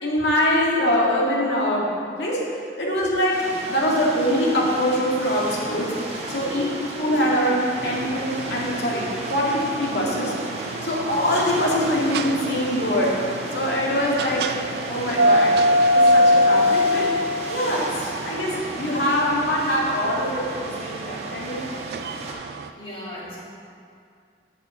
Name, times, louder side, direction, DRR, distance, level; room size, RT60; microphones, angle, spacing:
voice 1, 0.0-5.9 6.3-10.3 10.8-13.2 13.5-14.5 14.9-15.6 15.9-17.1 17.5-21.7, equal, 75° left, -4 dB, 2.0 m, -23 dB
sound 1, 3.3-22.3, right 2 dB, 40° right, 1.3 m, -35 dB
voice 2, 6.4-7.0 22.8-23.4, left 2 dB, 30° left, -7 dB, 2.2 m, -36 dB
sound 2, 7.8-22.7, equal, 60° right, 0.3 m, -25 dB
7.7 x 6.5 x 7.0 m, 2.3 s
head